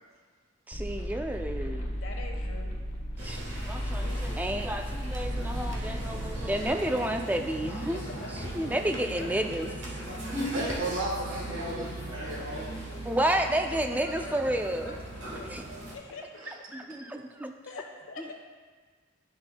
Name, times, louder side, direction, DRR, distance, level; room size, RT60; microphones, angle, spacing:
sound 1, 0.7-6.7, equal, 35° left, 0.8 m, -34 dB
voice 1, 0.7-1.9 3.2-8.0 8.5-9.7 13.1-14.9 15.5-15.6 16.7-17.5, right 1 dB, 10° right, 4 dB, 0.3 m, -31 dB
voice 2, 1.9-2.7 4.0-4.3 6.8-7.5 7.9-9.8 10.5-10.8 11.1-11.2 12.9-16.6 17.6-18.3, left 3 dB, 80° left, 1 dB, 1.1 m, -45 dB
sound 2, 3.2-16.0, right 1 dB, 60° right, 1.3 m, -38 dB
voice 3, 10.5-12.7 14.4-14.5, right 2 dB, 80° right, -1 dB, 1.1 m, -34 dB
11.0 x 6.1 x 2.2 m, 1.5 s
head